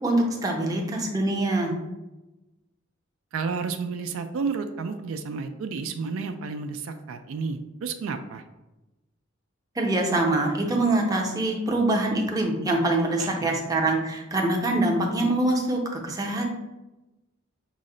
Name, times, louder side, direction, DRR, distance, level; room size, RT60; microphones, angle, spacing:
voice 1, 0.0-1.8 9.8-16.5, right 2 dB, 20° right, 0 dB, 0.6 m, -24 dB
voice 2, 3.3-8.4 13.2-13.5, right 5 dB, 80° right, 7 dB, 0.3 m, -31 dB
5.5 x 2.1 x 3.7 m, 1.0 s
head